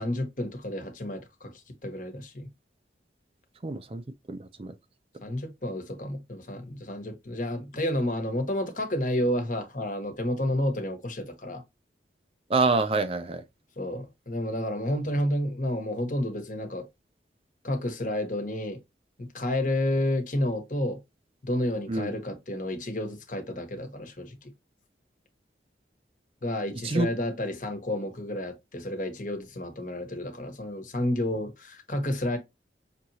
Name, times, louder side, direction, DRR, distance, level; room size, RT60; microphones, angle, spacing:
voice 1, 0.0-2.5 5.2-11.6 13.8-16.9 17.6-18.8 19.2-21.0 21.4-24.5 26.4-32.4, left 1 dB, 45° left, 1.2 m, -30 dB
voice 2, 3.6-4.0 4.3-4.7 12.5-13.4 21.9-22.1 26.8-27.1, right 3 dB, 30° right, 0.4 m, -26 dB
6.2 x 3.0 x 2.7 m
head